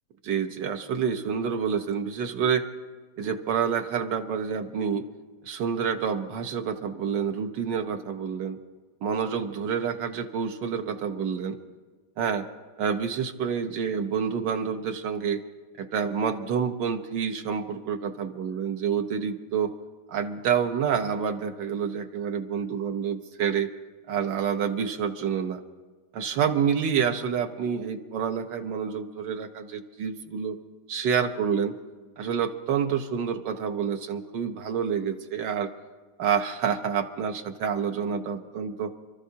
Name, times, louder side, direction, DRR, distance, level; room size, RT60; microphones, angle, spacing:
voice 1, 0.2-2.6 3.2-5.0 5.4-8.6 9.0-11.6 12.2-12.5 12.8-15.4 15.8-19.7 20.1-23.7 24.1-25.6 26.1-30.6 30.9-31.7 32.2-35.7 36.2-38.9, right 7 dB, 90° right, 7 dB, 1.6 m, -28 dB
28.5 x 13.5 x 2.8 m, 1.4 s
omnidirectional pair, 1.8 m